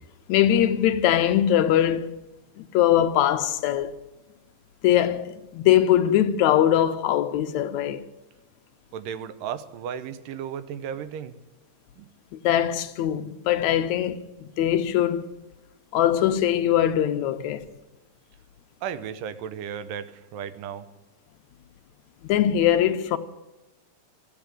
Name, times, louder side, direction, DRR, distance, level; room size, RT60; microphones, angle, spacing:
voice 1, 0.3-2.1 2.6-3.9 4.8-8.1 12.4-15.3 15.9-17.7 22.2-23.2, left 11 dB, 75° left, 1.8 m, -22 dB
voice 2, 8.9-11.4 12.0-12.1 18.8-20.9, right 8 dB, 90° right, 2.5 m, -34 dB
14.0 x 8.7 x 9.1 m
omnidirectional pair, 3.7 m